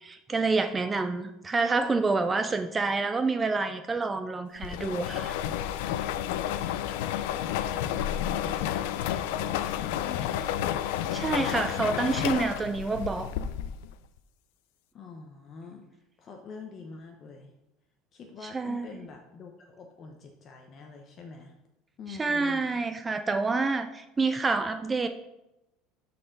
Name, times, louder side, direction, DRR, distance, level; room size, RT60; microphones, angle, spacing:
voice 1, 0.0-5.4 11.1-13.3 18.4-18.9 22.2-25.1, right 3 dB, 10° right, 8 dB, 0.3 m, -28 dB
sound 1, 4.6-13.9, left 11 dB, 70° left, 0.5 m, -31 dB
voice 2, 7.3-10.8 14.9-15.9 16.2-17.5 18.1-21.6 22.0-22.6, left 4 dB, 25° left, 3 dB, 0.6 m, -45 dB
12.0 x 4.3 x 3.9 m, 0.92 s
cardioid pair, 175°, 0 cm